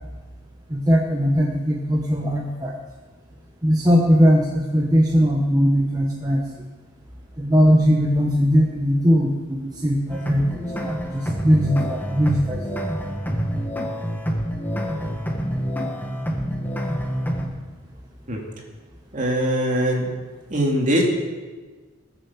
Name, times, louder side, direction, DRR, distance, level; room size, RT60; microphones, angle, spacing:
voice 1, 0.7-2.7 3.6-6.4 7.4-10.5 10.8-12.6, equal, 20° right, -2 dB, 1.1 m, -19 dB
sound 1, 10.1-17.5, equal, 10° left, 1.4 m, -27 dB
voice 2, 19.1-20.1 20.5-21.0, equal, 40° right, -1 dB, 2.7 m, -21 dB
18.5 x 7.1 x 7.2 m, 1.4 s
head